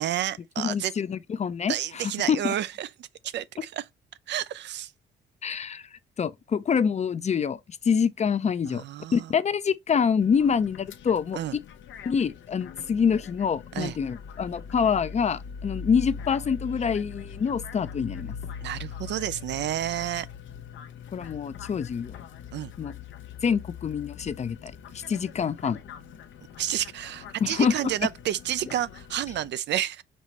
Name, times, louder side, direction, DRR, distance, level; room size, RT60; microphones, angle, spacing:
voice 1, 0.0-0.9 1.7-3.9 4.3-4.9 8.7-9.3 11.3-11.6 13.7-14.0 18.6-20.3 22.5-22.7 26.6-30.0, right 12 dB, 60° right, 0.4 m, -30 dB
voice 2, 0.6-1.7 2.3-2.5 5.4-5.8 6.2-7.6 7.8-8.8 9.1-11.4 12.1-18.4 21.1-22.2 22.8-22.9 23.4-25.8 27.4-27.7, left 6 dB, 35° left, 0.5 m, -26 dB
sound 1, 10.2-29.5, left 6 dB, 75° left, 0.6 m, -42 dB
5.3 x 3.1 x 2.9 m
cardioid pair, 90°, 20 cm